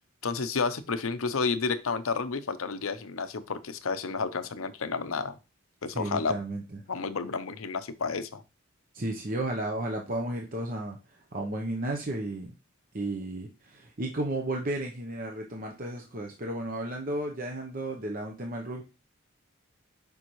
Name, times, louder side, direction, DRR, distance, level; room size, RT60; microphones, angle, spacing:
voice 1, 0.2-5.4 5.8-6.4 6.9-8.4, left 4 dB, 90° left, 11 dB, 0.7 m, -31 dB
voice 2, 5.9-6.6 8.9-11.0 11.3-12.5 12.9-18.8, right 1 dB, 45° right, 1 dB, 0.9 m, -33 dB
7.1 x 5.3 x 3.1 m, 0.29 s
head